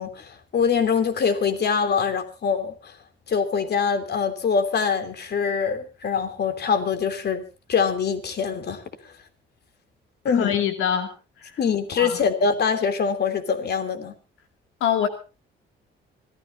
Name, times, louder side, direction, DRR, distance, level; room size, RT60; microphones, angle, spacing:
voice 1, 0.0-2.9 3.3-7.4 7.7-8.8 10.2-10.6 11.6-14.1, left 6 dB, 55° left, 3.1 m, -24 dB
voice 2, 10.3-11.1 12.0-12.2 14.8-15.1, left 9 dB, 90° left, 2.4 m, -23 dB
25.5 x 16.0 x 2.7 m
cardioid pair, 90°, 20 cm